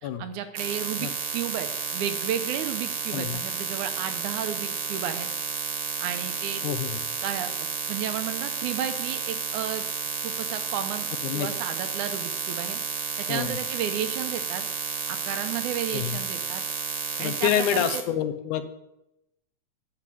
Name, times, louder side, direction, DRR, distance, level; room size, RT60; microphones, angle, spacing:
voice 1, 0.0-5.3 6.0-6.6 7.2-9.9 10.2-11.1 11.3-12.8 13.2-14.7 15.1-16.6 17.2-18.0, right 9 dB, 90° right, 8 dB, 2.4 m, -33 dB
sound 1, 0.5-18.0, right 5 dB, 50° right, 1.3 m, -31 dB
voice 2, 6.6-7.0 11.2-11.5 13.3-13.6 15.9-16.2 17.2-18.6, left 10 dB, 85° left, 10 dB, 2.3 m, -27 dB
10.5 x 5.8 x 7.7 m, 0.85 s
omnidirectional pair, 3.4 m